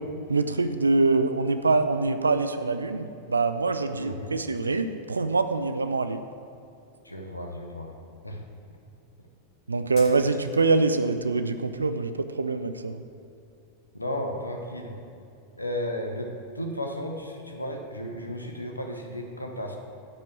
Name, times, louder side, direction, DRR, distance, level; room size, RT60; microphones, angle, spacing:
voice 1, 0.3-6.3 9.7-13.0, right 3 dB, 75° right, 9 dB, 0.4 m, -24 dB
voice 2, 3.9-4.3 7.0-7.9 8.2-8.4 13.9-15.0 15.6-19.8, equal, 85° left, 3 dB, 1.0 m, -34 dB
sound 1, 9.9-11.0, left 4 dB, 45° left, 1.9 m, -48 dB
10.5 x 5.3 x 7.5 m, 2.6 s
figure-of-eight pair, 90°, 0 cm